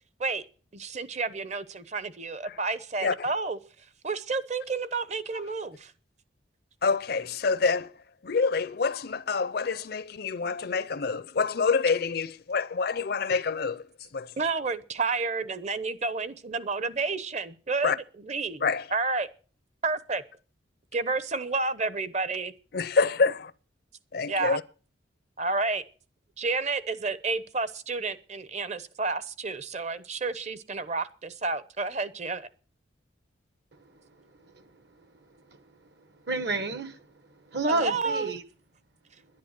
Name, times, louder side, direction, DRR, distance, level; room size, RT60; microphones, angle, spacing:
voice 1, 0.7-3.6 4.0-5.9 14.4-18.6 18.9-19.3 19.8-20.2 20.9-22.5 24.3-24.6 25.4-25.8 26.4-32.5 37.7-38.3, right 3 dB, 35° right, 0.9 m, -30 dB
voice 2, 6.8-7.9 8.2-13.9 14.1-14.3 17.8-18.0 18.6-18.9 22.7-23.5 24.1-24.6, left 4 dB, 55° left, 0.5 m, -27 dB
voice 3, 33.7-34.3 34.5-34.7 35.5-35.6 36.2-37.1 37.4-38.4, right 3 dB, 60° right, 1.5 m, -31 dB
11.0 x 10.5 x 7.5 m
head